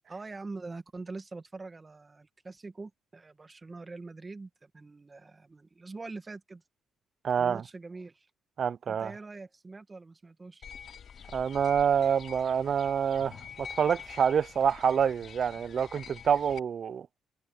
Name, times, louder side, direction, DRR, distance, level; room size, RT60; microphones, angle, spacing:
voice 1, 0.1-6.6 7.4-8.3 8.9-10.6, right 3 dB, 25° right, 2.0 m, -44 dB
voice 2, 7.2-7.6 8.6-9.1 11.3-17.1, right 7 dB, 55° right, 0.5 m, -27 dB
sound 1, 10.6-16.6, left 7 dB, 55° left, 2.7 m, -46 dB
cardioid pair, 90°, 0 cm